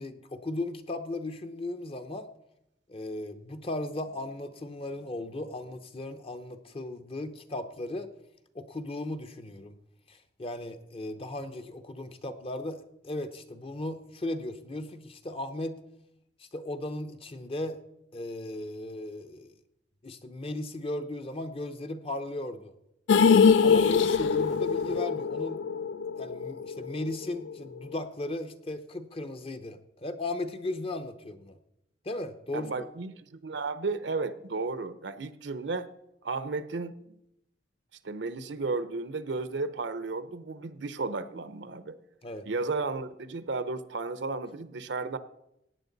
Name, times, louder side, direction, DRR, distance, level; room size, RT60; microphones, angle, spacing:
voice 1, 0.0-2.3 2.9-8.1 8.5-9.8 10.1-15.8 16.4-17.8 18.1-19.5 20.0-22.7 23.6-25.7 26.2-31.6 32.0-32.9 42.2-42.5, left 2 dB, 30° left, 9 dB, 0.8 m, -36 dB
sound 1, 23.1-27.2 27.5-27.6 27.9-28.0, left 6 dB, 90° left, 0.4 m, -23 dB
voice 2, 32.5-35.9 36.2-37.1 38.0-42.0 42.4-45.2, right 3 dB, 70° right, 13 dB, 0.7 m, -33 dB
16.5 x 9.0 x 4.0 m, 0.84 s
head